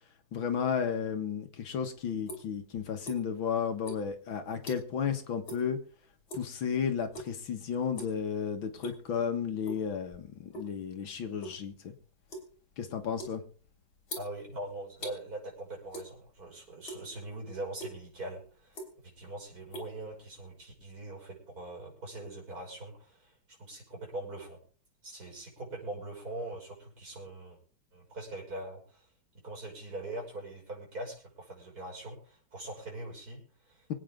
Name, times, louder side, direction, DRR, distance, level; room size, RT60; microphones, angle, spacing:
voice 1, 0.3-5.8 6.3-11.9 12.8-13.4, left 7 dB, 75° left, 6 dB, 2.3 m, -33 dB
sound 1, 1.6-3.5 3.8-5.1 5.4-5.7 6.0-6.6 7.1-7.5 7.8-8.2 8.6-9.2 9.6-10.8 11.1-15.2 15.9-16.5 16.7-17.3 17.8-17.9 18.5-19.2 19.5-20.6, equal, 55° left, 4.0 m, -43 dB
voice 2, 14.2-23.3 23.6-24.6 25.0-27.6 27.9-29.1 29.3-34.0, right 2 dB, 45° right, 0 dB, 6.7 m, -42 dB
24.5 x 9.0 x 3.8 m, 0.41 s
omnidirectional pair, 2.2 m